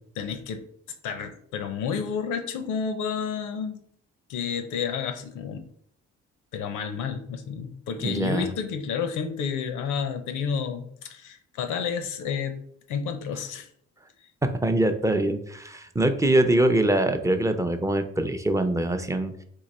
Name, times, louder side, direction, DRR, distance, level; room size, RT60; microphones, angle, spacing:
voice 1, 0.2-0.6 1.0-3.8 4.3-5.6 6.5-12.6 12.9-13.7, left 6 dB, 85° left, 8 dB, 0.7 m, -30 dB
voice 2, 8.0-8.5 14.4-19.3, right 1 dB, 10° right, 7 dB, 0.4 m, -23 dB
3.9 x 2.8 x 4.2 m, 0.68 s
cardioid pair, 90°, 30 cm